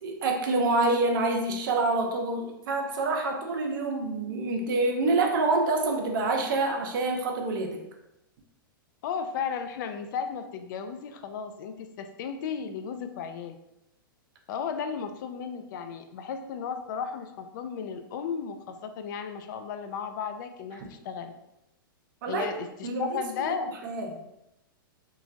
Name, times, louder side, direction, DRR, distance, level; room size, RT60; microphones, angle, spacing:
voice 1, 0.0-7.8 22.2-22.5 22.8-23.5 23.8-24.2, right 2 dB, 65° right, 2 dB, 0.6 m, -27 dB
voice 2, 9.0-13.6 14.5-21.3 22.3-23.7, left 6 dB, 60° left, 8 dB, 0.4 m, -34 dB
3.1 x 2.2 x 2.6 m, 0.89 s
hypercardioid pair, 120°, 12 cm